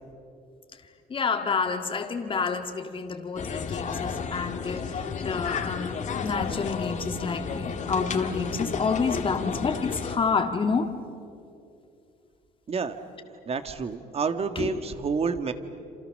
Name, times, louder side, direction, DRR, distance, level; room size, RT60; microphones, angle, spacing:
voice 1, 1.1-10.9 14.6-14.7, left 5 dB, 30° left, 5 dB, 1.9 m, -29 dB
sound 1, 3.4-10.2, left 6 dB, 45° left, 2.0 m, -32 dB
voice 2, 13.5-15.5, right 5 dB, 35° right, 9 dB, 1.8 m, -29 dB
28.5 x 28.0 x 6.6 m, 2.6 s
cardioid pair, 110°, 17 cm